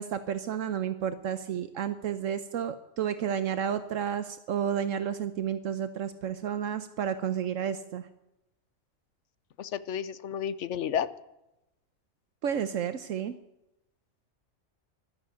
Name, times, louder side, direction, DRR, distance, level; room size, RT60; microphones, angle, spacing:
voice 1, 0.0-8.1 12.4-13.4, right 8 dB, 75° right, 10 dB, 1.1 m, -31 dB
voice 2, 9.6-11.1, left 8 dB, 70° left, 15 dB, 1.0 m, -31 dB
13.5 x 12.0 x 8.2 m, 0.92 s
omnidirectional pair, 1.4 m